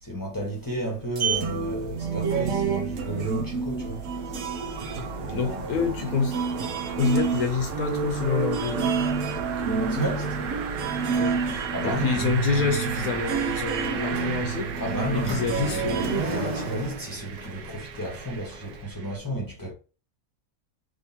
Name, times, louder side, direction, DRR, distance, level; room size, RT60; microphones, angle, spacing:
voice 1, 0.0-4.1 5.2-5.9 9.7-10.5 11.7-12.2 14.8-19.7, equal, 15° left, 1.0 m, -32 dB
Sliding door, 0.6-18.8, right 4 dB, 45° right, 0.6 m, -37 dB
sound 1, 1.3-16.2, right 5 dB, 70° right, 1.0 m, -29 dB
sound 2, 2.1-19.2, right 7 dB, 90° right, 1.1 m, -37 dB
voice 2, 5.3-6.4 6.9-8.9 11.1-11.4 11.8-14.7 15.1-16.1, left 6 dB, 80° left, 1.2 m, -27 dB
3.6 x 3.0 x 2.8 m
omnidirectional pair, 1.5 m